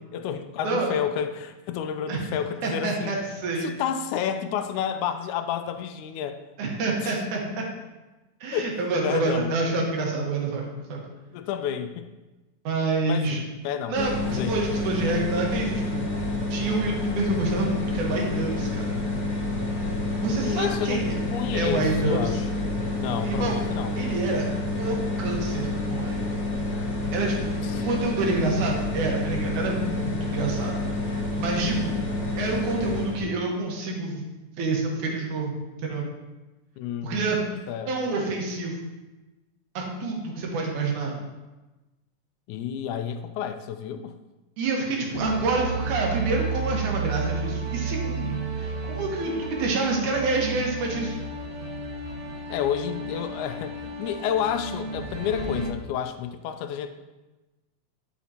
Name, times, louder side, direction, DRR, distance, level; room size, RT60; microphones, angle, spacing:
voice 1, 0.0-3.1 3.6-6.4 7.0-7.2 8.5-8.7 9.0-9.5 11.3-12.1 13.1-13.3 13.6-14.6 20.3-21.0 21.3-24.1 27.6-27.9 36.8-38.3 42.5-44.1 52.5-56.9, left 9 dB, 85° left, 9 dB, 2.0 m, -30 dB
voice 2, 2.6-3.7 6.6-7.6 8.4-11.0 12.6-13.4 13.9-16.1 16.5-18.9 20.2-21.1 21.5-22.4 23.2-23.6 24.0-24.5 24.8-26.3 27.1-27.5 27.8-30.7 31.4-31.9 32.4-34.2 34.6-36.1 37.0-37.4 37.9-38.8 39.7-41.2 44.6-51.3, right 3 dB, 85° right, -1 dB, 2.8 m, -27 dB
sound 1, 13.9-33.2, left 2 dB, 45° left, 2.5 m, -28 dB
sound 2, 45.1-55.7, right 3 dB, 60° right, 1.7 m, -32 dB
11.0 x 6.0 x 2.9 m, 1.1 s
omnidirectional pair, 3.4 m